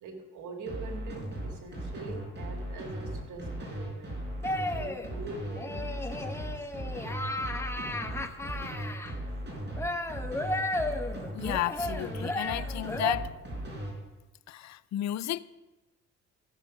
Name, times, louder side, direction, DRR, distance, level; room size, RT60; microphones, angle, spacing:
voice 1, 0.0-4.2 4.7-6.7, right 3 dB, 80° right, 2.0 m, -43 dB
sound 1, 0.7-13.9, right 1 dB, 35° right, 4.8 m, -37 dB
sound 2, 4.4-5.1 5.6-9.1 9.8-13.2, left 1 dB, 10° left, 0.9 m, -34 dB
voice 2, 11.3-13.3 14.5-15.4, left 13 dB, 65° left, 0.5 m, -32 dB
14.5 x 7.4 x 5.0 m
cardioid pair, 90°, 30 cm